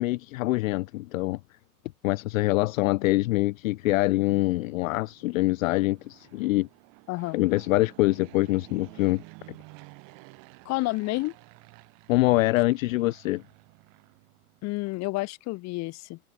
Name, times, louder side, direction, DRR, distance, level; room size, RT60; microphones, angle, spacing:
voice 1, 0.0-1.4 2.0-6.7 7.3-9.2 12.1-13.4, left 19 dB, 65° left, 0.5 m, -24 dB
Fixed-wing aircraft airplane, 3.7-14.8, right 31 dB, 50° right, 4.8 m, -52 dB
voice 2, 7.1-7.4 10.6-11.3 14.6-16.2, left 21 dB, 35° left, 1.2 m, -30 dB
open air
hypercardioid pair, 110°, 44 cm